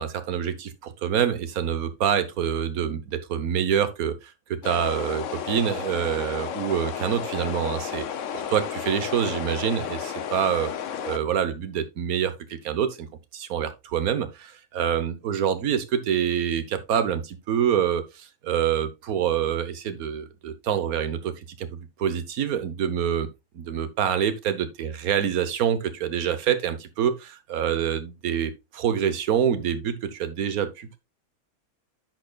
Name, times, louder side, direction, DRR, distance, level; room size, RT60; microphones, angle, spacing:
voice 1, 0.0-8.0 8.3-10.7 11.0-13.1 13.3-23.3 23.5-31.0, right 8 dB, 85° right, 1.4 m, -26 dB
sound 1, 4.6-11.2, left 8 dB, 65° left, 1.0 m, -32 dB
10.0 x 6.6 x 2.3 m
omnidirectional pair, 1.5 m